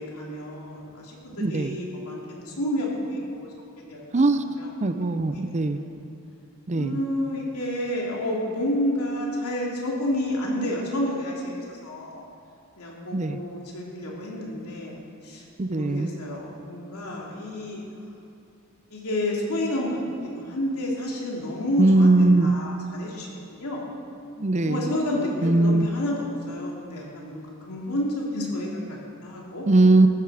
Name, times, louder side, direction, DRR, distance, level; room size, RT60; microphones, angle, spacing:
voice 1, 0.0-4.0 4.6-4.7 5.2-5.8 6.7-12.2 12.8-15.0 15.2-17.8 18.9-22.1 22.4-23.9 24.6-29.6, left 1 dB, 90° left, -3 dB, 2.8 m, -30 dB
voice 2, 1.4-1.8 4.1-4.5 4.8-5.8 6.7-7.0 13.1-13.4 15.6-16.1 21.8-22.5 24.4-24.9 25.4-25.9 29.7-30.1, right 2 dB, 30° right, 10 dB, 0.6 m, -20 dB
14.5 x 12.5 x 4.9 m, 2.5 s
head